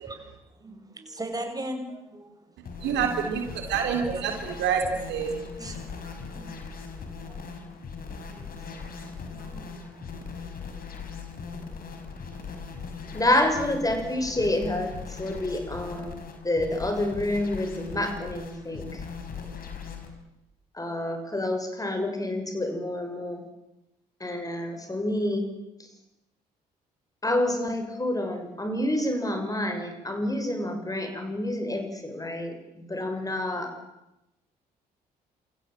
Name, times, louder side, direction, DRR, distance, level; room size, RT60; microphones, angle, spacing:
voice 1, 0.0-3.0 5.4-8.6 9.0-10.5, right 1 dB, 15° right, 5 dB, 6.9 m, -41 dB
sound 1, 2.6-20.1, left 5 dB, 45° left, 5.4 m, -39 dB
voice 2, 2.8-5.4, right 7 dB, 60° right, 4 dB, 3.6 m, -27 dB
voice 3, 13.1-19.0 20.7-23.4 24.2-25.5 27.2-33.8, left 1 dB, 15° left, 6 dB, 6.0 m, -28 dB
27.5 x 26.5 x 7.6 m, 0.91 s
figure-of-eight pair, 45°, 21 cm